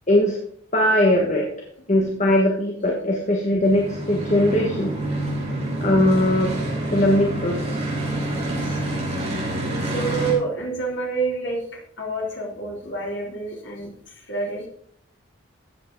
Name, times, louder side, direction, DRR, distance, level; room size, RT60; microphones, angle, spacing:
voice 1, 0.7-1.5 1.9-4.9 5.8-6.5 6.9-7.8, left 1 dB, 35° left, 0 dB, 1.5 m, -20 dB
sound 1, 3.6-10.3, right 1 dB, 30° right, 5.7 m, -27 dB
voice 2, 8.5-8.9 9.9-14.6, right 3 dB, 60° left, -2 dB, 3.8 m, -28 dB
14.5 x 8.6 x 4.0 m, 0.67 s
head